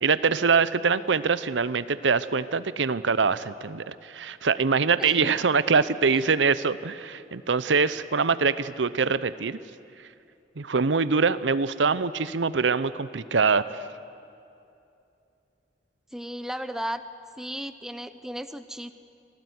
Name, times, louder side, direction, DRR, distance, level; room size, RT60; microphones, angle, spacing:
voice 1, 0.0-9.6 10.6-13.6, right 5 dB, 85° right, 15 dB, 0.8 m, -24 dB
voice 2, 16.1-17.0 17.4-18.9, equal, 5° right, 11 dB, 0.7 m, -35 dB
26.5 x 18.5 x 9.6 m, 2.6 s
head